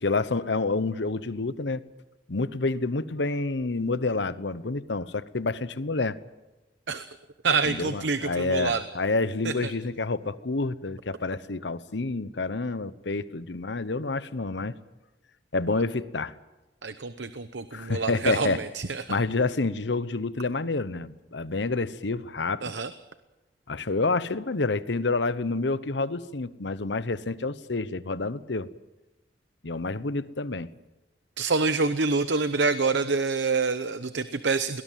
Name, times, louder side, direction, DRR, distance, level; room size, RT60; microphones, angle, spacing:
voice 1, 0.0-1.8 2.3-6.2 7.7-14.7 15.5-16.3 17.7-18.6 19.1-22.7 23.7-28.7 29.6-30.7, left 3 dB, 80° left, 15 dB, 1.0 m, -28 dB
voice 2, 7.4-8.8 9.4-9.7 16.8-19.2 22.6-22.9 31.4-34.8, right 4 dB, 80° right, 11 dB, 0.9 m, -27 dB
22.5 x 19.0 x 7.6 m, 1.1 s
head